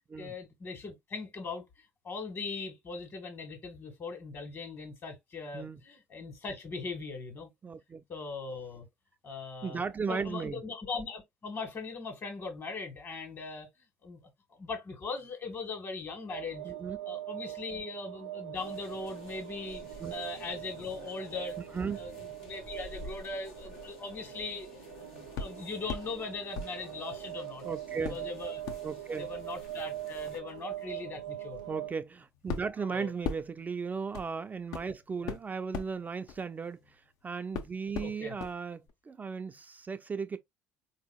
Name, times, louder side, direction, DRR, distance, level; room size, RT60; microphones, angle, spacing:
voice 1, 0.2-1.6 2.0-7.5 8.1-8.8 9.2-9.8 10.1-13.7 14.0-14.2 14.6-16.7 17.0-19.8 20.1-21.6 21.9-24.7 25.4-27.6 28.1-28.6 29.1-31.6 32.8-33.1 35.2-35.4 38.0-38.3, left 4 dB, 45° left, 1.7 m, -40 dB
voice 2, 7.6-8.0 9.6-10.6 16.6-17.0 20.0-20.1 21.7-22.0 27.6-28.2 28.8-29.3 31.7-40.4, right 5 dB, 25° right, 0.4 m, -36 dB
sound 1, 16.3-31.9, right 14 dB, 90° right, 0.4 m, -42 dB
sound 2, 18.5-30.4, left 2 dB, 80° left, 1.3 m, -52 dB
sound 3, 25.4-26.1 26.5-27.5 28.0-37.1 37.5-38.6 38.9-39.0, left 5 dB, 65° left, 0.7 m, -41 dB
3.9 x 2.8 x 2.3 m
hypercardioid pair, 65°, 6 cm